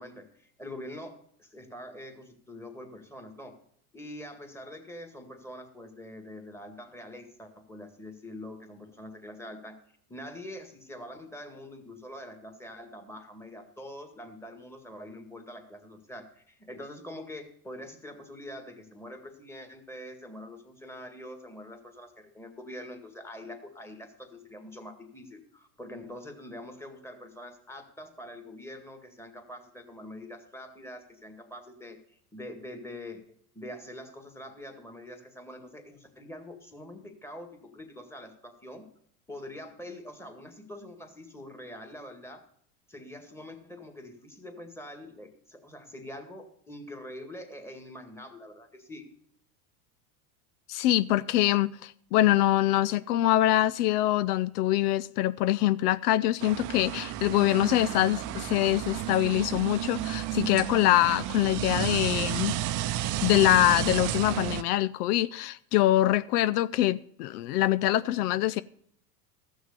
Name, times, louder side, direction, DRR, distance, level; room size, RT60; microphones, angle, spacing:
voice 1, 0.0-3.6 3.9-9.8 10.1-33.2 33.5-38.9 39.3-42.4 42.9-49.1, left 1 dB, 5° left, 1.9 m, -44 dB
voice 2, 50.7-62.5 63.2-68.6, left 14 dB, 75° left, 0.6 m, -24 dB
sound 1, 56.4-64.6, right 14 dB, 40° right, 0.7 m, -32 dB
14.5 x 6.4 x 6.7 m
supercardioid pair, 110°, 46 cm